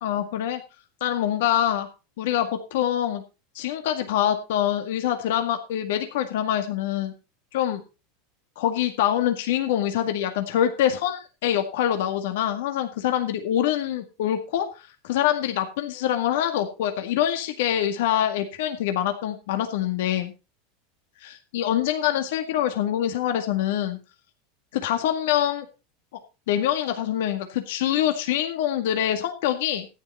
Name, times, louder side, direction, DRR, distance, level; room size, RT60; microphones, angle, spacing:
voice 1, 0.0-0.6 1.0-1.9 2.2-3.2 3.6-7.1 7.5-7.8 8.6-20.3 21.2-24.0 24.7-25.7 26.5-29.9, left 11 dB, 75° left, 6 dB, 1.9 m, -25 dB
14.0 x 9.9 x 4.2 m, 0.30 s
hypercardioid pair, 105°, 0 cm